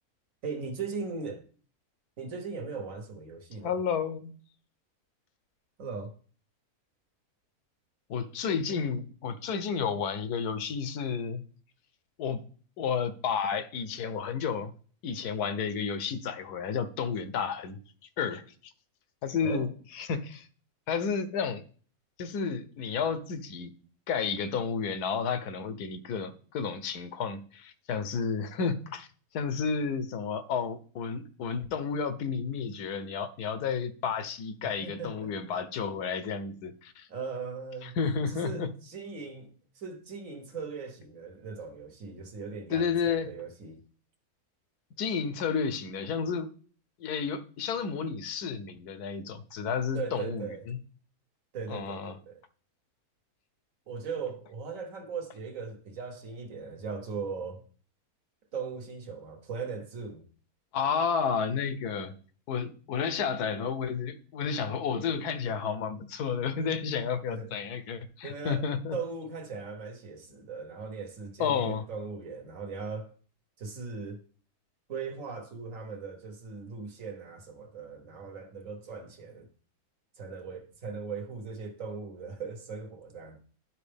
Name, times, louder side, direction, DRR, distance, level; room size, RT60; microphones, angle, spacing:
voice 1, 0.4-1.4 2.2-3.8 5.8-6.1 19.4-19.7 34.8-35.3 37.1-38.0 38.3-43.8 49.9-50.7 51.5-52.4 53.9-57.6 58.5-60.2 67.3-67.5 68.2-68.6 68.9-73.1 73.6-74.2 74.9-79.5 80.2-83.4, right 5 dB, 60° right, 1.5 m, -39 dB
voice 2, 3.6-4.3 8.1-11.4 12.2-12.4 12.8-14.7 15.0-17.8 18.2-18.5 19.2-19.7 19.9-20.5 20.9-21.6 22.2-23.7 24.1-29.1 29.3-37.1 37.8-38.7 42.7-43.3 45.0-46.5 47.0-50.8 51.7-52.2 60.7-62.2 62.5-69.0 71.4-71.8, left 6 dB, 85° left, 1.3 m, -31 dB
11.0 x 4.4 x 3.4 m
omnidirectional pair, 1.6 m